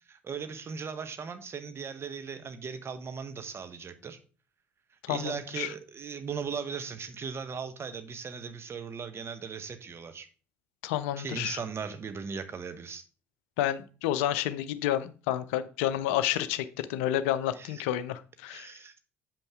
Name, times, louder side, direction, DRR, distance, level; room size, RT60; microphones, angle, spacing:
voice 1, 0.1-4.2 5.1-10.3 11.2-13.0 17.6-17.8 18.5-19.0, right 6 dB, 35° right, 0.9 m, -38 dB
voice 2, 5.0-5.7 10.8-11.6 13.6-18.7, left 12 dB, 70° left, 0.5 m, -30 dB
7.1 x 5.4 x 3.5 m
figure-of-eight pair, 50°, 7 cm